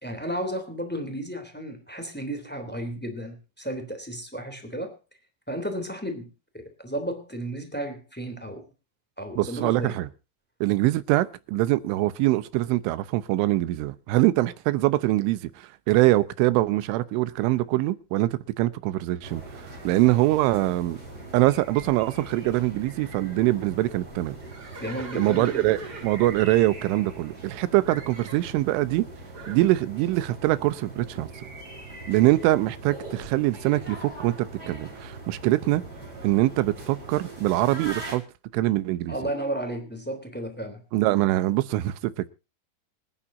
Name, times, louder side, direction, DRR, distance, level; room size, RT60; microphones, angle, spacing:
voice 1, 0.0-4.9 5.5-8.7 9.2-9.9 24.8-25.6 39.1-40.8, right 1 dB, 5° left, 1.6 m, -33 dB
voice 2, 9.4-10.1 10.6-19.4 19.9-21.0 21.3-24.4 25.2-25.8 26.0-29.1 29.5-31.3 32.1-35.8 36.2-38.2 38.5-39.2 40.9-42.3, right 17 dB, 85° right, 3.4 m, -23 dB
sound 1, 19.2-38.2, right 2 dB, 20° right, 5.2 m, -41 dB
Livestock farm animals working animals, 24.4-27.5 27.8-28.5 29.3-29.7, right 4 dB, 60° right, 1.0 m, -42 dB
26.5 x 10.0 x 2.7 m
omnidirectional pair, 5.5 m